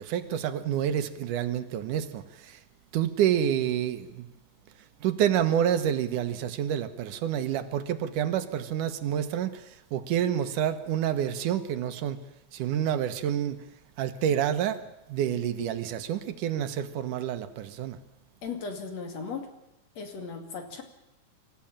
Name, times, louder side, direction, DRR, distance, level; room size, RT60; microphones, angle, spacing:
voice 1, 0.0-2.6 2.9-4.3 5.0-12.2 12.5-13.6 14.0-18.0, right 10 dB, 90° right, 10 dB, 2.7 m, -28 dB
voice 2, 18.4-19.5 19.9-20.8, left 5 dB, 60° left, 5 dB, 3.5 m, -37 dB
26.0 x 15.0 x 8.8 m, 0.92 s
omnidirectional pair, 3.5 m